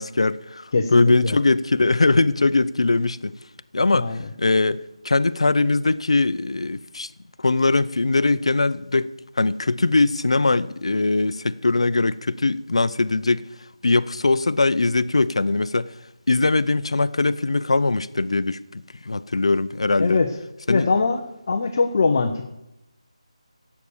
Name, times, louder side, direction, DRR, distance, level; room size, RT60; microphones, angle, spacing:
voice 1, 0.0-3.4 3.7-4.1 4.4-7.1 7.4-13.4 13.8-15.9 16.3-20.2 20.7-20.9, left 3 dB, 60° left, 0.7 m, -21 dB
voice 2, 0.7-1.4 3.9-4.2 20.0-20.3 20.7-21.2 21.5-22.5, left 4 dB, 30° left, 0.8 m, -21 dB
15.5 x 8.4 x 7.1 m
figure-of-eight pair, 175°, 3 cm